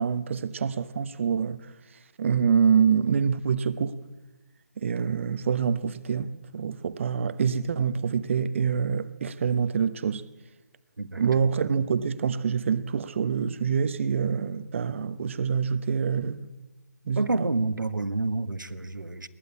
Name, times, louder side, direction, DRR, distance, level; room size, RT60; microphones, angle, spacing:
voice 1, 0.0-1.7 2.2-4.0 4.8-10.3 11.2-16.5 17.1-17.5, right 6 dB, 40° right, 1.1 m, -26 dB
voice 2, 11.0-11.6 17.2-19.3, right 3 dB, 90° right, 1.7 m, -29 dB
21.5 x 19.0 x 8.5 m
figure-of-eight pair, 155°, 10 cm